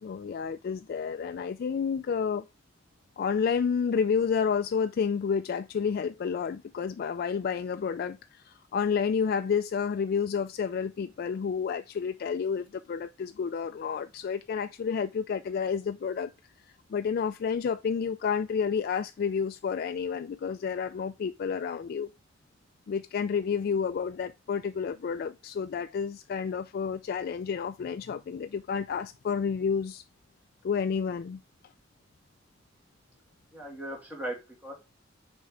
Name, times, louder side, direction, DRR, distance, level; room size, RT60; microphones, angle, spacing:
voice 1, 0.0-2.4 3.2-16.3 16.6-22.1 22.9-30.0 30.6-31.4, left 6 dB, 55° left, 0.3 m, -30 dB
voice 2, 33.5-34.7, right 1 dB, 10° right, 2.3 m, -38 dB
6.3 x 4.5 x 3.7 m
head